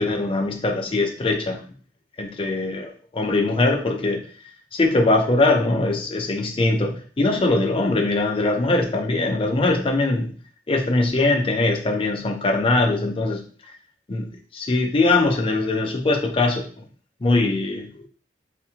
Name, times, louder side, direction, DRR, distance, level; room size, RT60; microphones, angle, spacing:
voice 1, 0.0-1.6 2.2-4.2 4.7-10.3 10.7-13.4 14.1-16.6 17.2-18.1, left 2 dB, 30° left, 3 dB, 0.5 m, -21 dB
3.4 x 2.6 x 2.8 m, 0.41 s
head